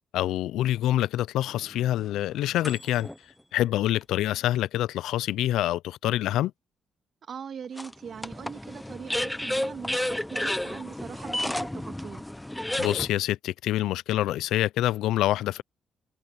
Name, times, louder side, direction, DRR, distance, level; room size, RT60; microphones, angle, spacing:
voice 1, 0.1-3.1 3.5-6.5 12.8-15.6, left 13 dB, 85° left, 0.4 m, -26 dB
sound 1, 1.5-3.2 3.9-4.0 7.8-13.1, left 1 dB, 5° left, 0.6 m, -32 dB
voice 2, 7.2-12.2, right 7 dB, 55° right, 1.8 m, -41 dB
cardioid pair, 90°, 0 cm